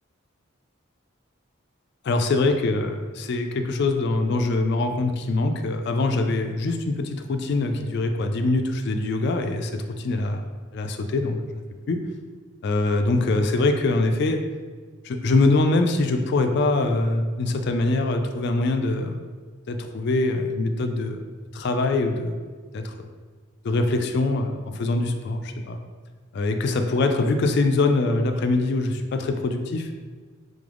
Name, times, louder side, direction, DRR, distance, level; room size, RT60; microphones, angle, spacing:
voice 1, 2.0-10.4 10.7-12.0 12.6-14.4 15.0-19.2 19.7-21.2 21.5-22.4 22.7-23.1 23.6-25.8 26.3-29.9, left 2 dB, 55° left, 6 dB, 0.3 m, -23 dB
3.8 x 3.7 x 3.4 m, 1.5 s
head